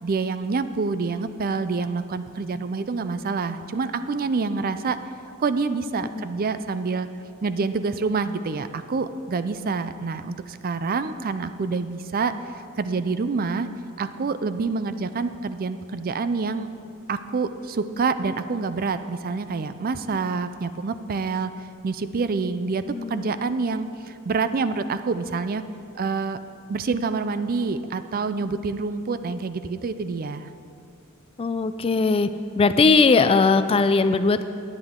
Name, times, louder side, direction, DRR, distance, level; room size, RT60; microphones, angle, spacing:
voice 1, 0.0-5.0 5.4-7.1 7.4-12.3 12.8-13.7 14.0-16.7 17.1-21.5 21.8-22.8 23.1-25.6 26.0-26.4 26.7-30.5, right 4 dB, 40° right, 12 dB, 0.4 m, -27 dB
voice 2, 22.9-23.3 31.4-32.3 32.6-34.4, left 4 dB, 25° left, 11 dB, 0.3 m, -19 dB
18.5 x 9.7 x 3.7 m, 2.5 s
head